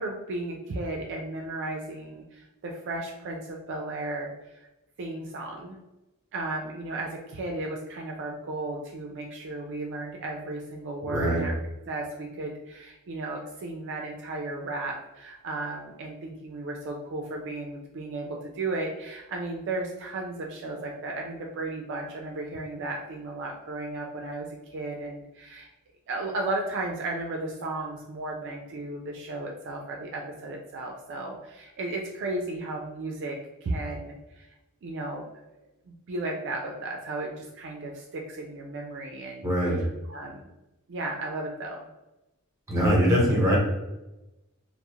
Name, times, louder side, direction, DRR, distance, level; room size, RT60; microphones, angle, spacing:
voice 1, 0.0-4.7 5.0-5.8 6.3-11.6 11.9-25.7 26.1-34.5 34.8-35.3 35.9-39.5 40.1-40.5 40.9-41.9, right 2 dB, 55° right, 0 dB, 0.4 m, -34 dB
voice 2, 11.1-11.5 39.4-39.9 42.7-43.6, equal, 15° right, -3 dB, 0.8 m, -22 dB
2.3 x 2.0 x 2.9 m, 0.98 s
head